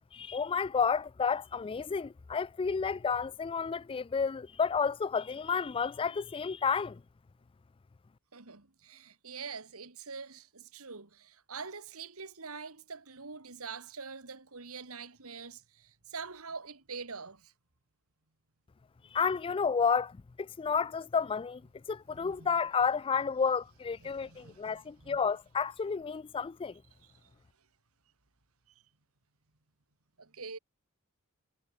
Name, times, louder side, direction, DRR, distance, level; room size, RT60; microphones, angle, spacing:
voice 1, 0.1-7.0 19.1-21.6 21.9-26.8, left 5 dB, 25° left, 0.3 m, -31 dB
voice 2, 8.3-17.5 22.1-22.5 24.0-25.2 27.0-27.3 30.2-30.6, right 5 dB, 75° right, 2.3 m, -45 dB
head